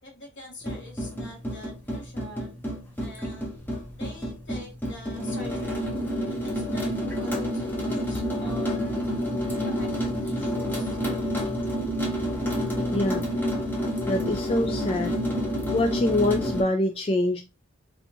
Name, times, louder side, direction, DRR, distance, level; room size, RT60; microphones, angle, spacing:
voice 1, 0.0-2.5 3.0-3.5 3.9-5.9 6.3-9.0 9.6-10.9, left 2 dB, 60° left, -1 dB, 1.5 m, -45 dB
sound 1, 0.6-16.6, equal, 10° left, 0.7 m, -29 dB
voice 2, 12.9-13.2 14.1-15.1 15.7-17.4, left 1 dB, 25° left, 4 dB, 0.3 m, -25 dB
3.4 x 2.7 x 2.6 m, 0.26 s
head